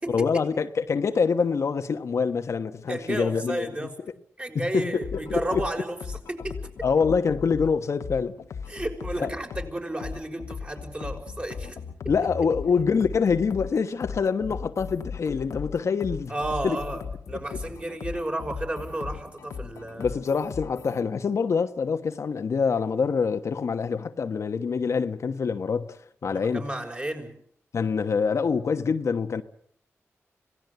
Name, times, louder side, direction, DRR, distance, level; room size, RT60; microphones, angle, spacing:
voice 1, 0.1-3.9 4.5-5.7 6.8-8.3 9.2-9.3 12.1-16.3 16.6-16.8 20.0-26.0 26.2-26.6 27.7-29.4, left 5 dB, 70° left, 1.2 m, -25 dB
voice 2, 2.9-3.9 4.4-6.7 8.7-11.8 16.3-17.0 17.3-20.4 26.3-27.3, right 1 dB, 25° right, 6.0 m, -32 dB
sound 1, 5.0-21.0, left 6 dB, 90° left, 1.5 m, -38 dB
26.5 x 18.0 x 8.1 m
cardioid pair, 65°, 5 cm